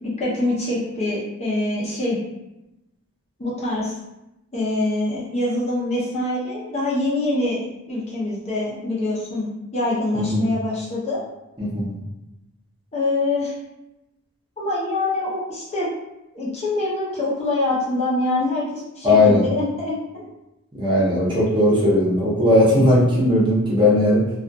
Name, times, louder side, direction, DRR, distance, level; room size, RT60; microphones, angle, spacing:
voice 1, 0.0-2.2 3.4-3.9 4.5-7.6 7.9-11.2 12.9-13.5 14.6-15.9 16.3-20.3, left 2 dB, 30° left, -6 dB, 0.6 m, -24 dB
voice 2, 10.1-10.5 11.6-11.9 19.0-19.4 20.7-24.2, left 1 dB, 20° right, -7 dB, 0.7 m, -17 dB
2.4 x 2.3 x 2.6 m, 0.93 s
head